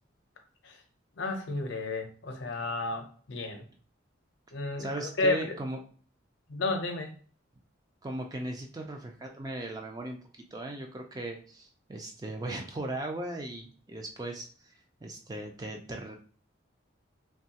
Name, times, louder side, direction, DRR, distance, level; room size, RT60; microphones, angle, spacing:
voice 1, 1.2-3.6 4.5-5.5 6.5-7.2, left 2 dB, 65° left, 5 dB, 0.5 m, -32 dB
voice 2, 4.8-5.8 8.0-10.2 10.5-14.7 15.0-16.2, right 1 dB, 20° right, 3 dB, 0.3 m, -37 dB
3.0 x 2.3 x 2.8 m, 0.43 s
head